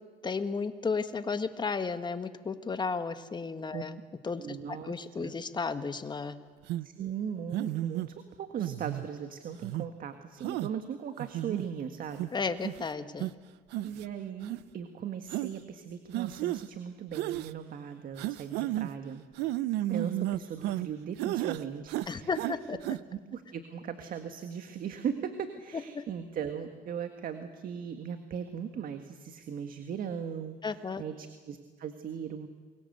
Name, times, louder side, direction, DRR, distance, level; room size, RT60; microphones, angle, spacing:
voice 1, 0.2-4.0 4.2-6.4 12.3-13.3 22.1-22.8 25.7-26.0 30.6-31.0, left 4 dB, 25° left, 10 dB, 1.7 m, -33 dB
voice 2, 4.4-5.3 6.8-12.3 13.8-19.2 19.9-22.3 23.1-32.5, right 8 dB, 55° right, 8 dB, 1.8 m, -38 dB
sound 1, 6.7-6.9 7.5-8.1 8.6-9.1 9.6-9.9 10.4-10.7 11.2-11.6 12.2-12.3 12.6-12.8 13.2-13.3 13.7-14.1 14.4-14.6 15.3-15.5 16.1-16.6 17.1-17.5 18.2-18.9 19.4-20.9 21.2-21.6 21.9-22.5 22.8-23.0, right 15 dB, 90° right, 0.8 m, -32 dB
29.0 x 22.5 x 8.1 m, 1.5 s
cardioid pair, 110°, 17 cm